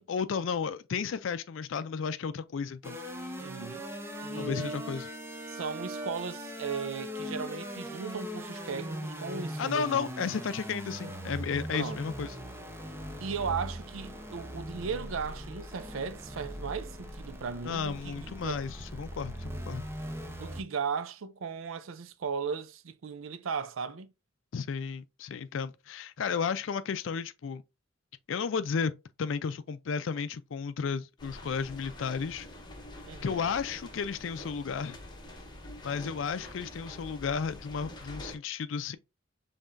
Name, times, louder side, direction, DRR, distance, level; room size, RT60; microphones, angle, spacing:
voice 1, 0.0-3.0 4.3-5.1 9.6-12.3 17.6-19.9 24.5-27.6 28.3-28.9 29.2-32.5 33.2-35.0 35.8-39.0, left 6 dB, 70° left, 0.4 m, -33 dB
sound 1, 2.8-20.6, equal, 15° right, 0.7 m, -40 dB
voice 2, 3.4-3.9 4.2-4.8 5.5-10.3 11.7-12.0 13.2-18.6 20.4-24.1 33.1-33.5, right 6 dB, 85° right, 0.5 m, -37 dB
sound 2, 31.2-38.4, left 1 dB, 20° left, 1.0 m, -46 dB
5.5 x 3.5 x 2.5 m
head